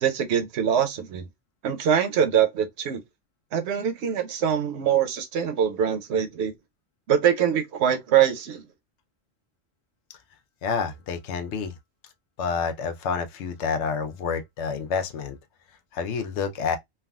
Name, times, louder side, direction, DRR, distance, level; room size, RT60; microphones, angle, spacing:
voice 1, 0.0-1.2 1.6-3.0 3.5-6.5 7.1-8.6, right 8 dB, 75° right, 0.9 m, -23 dB
voice 2, 10.6-11.8 12.4-15.4 15.9-16.8, left 5 dB, 85° left, 0.9 m, -28 dB
3.4 x 2.3 x 2.2 m
omnidirectional pair, 1.1 m